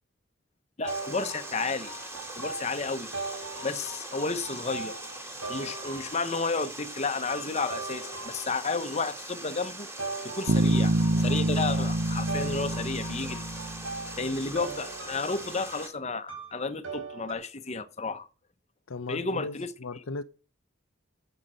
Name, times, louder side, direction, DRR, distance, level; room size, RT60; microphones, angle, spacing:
voice 1, 0.8-1.9 2.4-3.1 3.6-4.9 5.5-9.9 10.2-13.4 14.2-18.3 19.1-19.7, left 3 dB, 35° left, 1.0 m, -32 dB
sound 1, 0.8-6.6 7.3-8.9 10.0-17.3, right 3 dB, 80° right, 4.7 m, -40 dB
Water, 0.9-15.9, right 1 dB, 15° right, 2.8 m, -41 dB
Bass guitar, 10.5-14.2, right 1 dB, 60° right, 0.7 m, -27 dB
voice 2, 18.9-20.2, left 3 dB, 85° left, 0.7 m, -37 dB
10.5 x 8.0 x 7.6 m
head